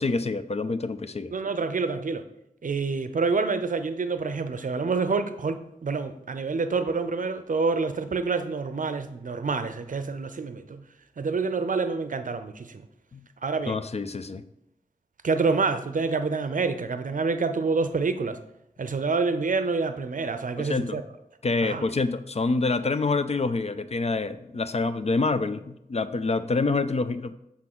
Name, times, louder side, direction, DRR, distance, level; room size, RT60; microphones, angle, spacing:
voice 1, 0.0-1.3 13.1-13.3 13.7-14.4 20.6-21.0 21.4-27.3, left 3 dB, 45° left, 12 dB, 0.4 m, -27 dB
voice 2, 1.3-2.2 2.6-10.8 11.2-12.8 13.4-13.8 15.2-18.4 18.8-21.0 21.6-21.9, right 4 dB, 60° right, 10 dB, 0.5 m, -27 dB
5.8 x 3.7 x 6.0 m, 0.83 s
wide cardioid pair, 65°, 15 cm